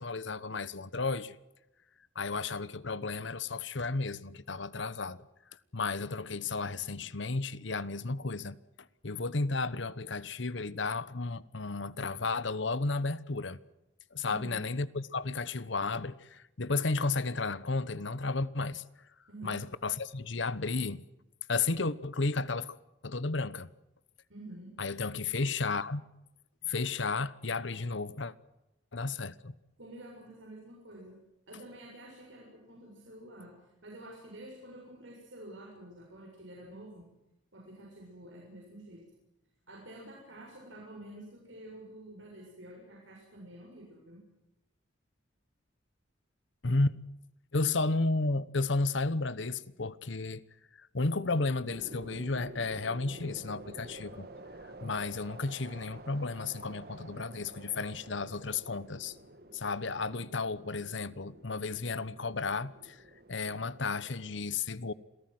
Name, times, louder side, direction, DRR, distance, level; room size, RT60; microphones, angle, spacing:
voice 1, 0.0-1.4 2.1-5.2 5.7-8.6 9.0-13.6 14.1-18.8 19.4-21.0 21.5-22.8 23.0-23.7 24.8-26.0 26.6-28.3 28.9-29.5 46.6-47.0 47.5-50.4 50.8-54.3 54.8-59.2 59.5-63.0 63.3-64.9, left 3 dB, 65° left, 1.1 m, -33 dB
voice 2, 14.2-14.6 19.3-19.6 24.3-24.7 29.8-31.2 31.5-33.6 33.8-37.1 37.5-39.0 39.7-44.2, right 1 dB, 75° right, 7.2 m, -49 dB
sound 1, 51.7-64.4, right 1 dB, 50° right, 2.1 m, -50 dB
28.0 x 17.5 x 7.8 m
head